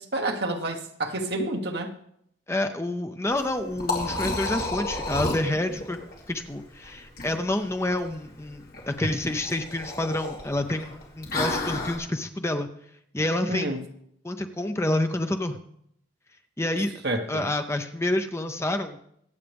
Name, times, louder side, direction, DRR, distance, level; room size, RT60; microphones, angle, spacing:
voice 1, 0.0-2.0 13.5-13.9 17.0-17.5, right 2 dB, 55° right, 1.2 m, -29 dB
voice 2, 2.5-6.0 6.3-12.7 13.1-13.7 14.2-15.6 16.6-16.9 17.3-19.0, left 1 dB, 15° left, 0.6 m, -28 dB
Liquid, 3.3-12.0, left 2 dB, 50° left, 2.8 m, -33 dB
24.0 x 8.1 x 3.5 m
head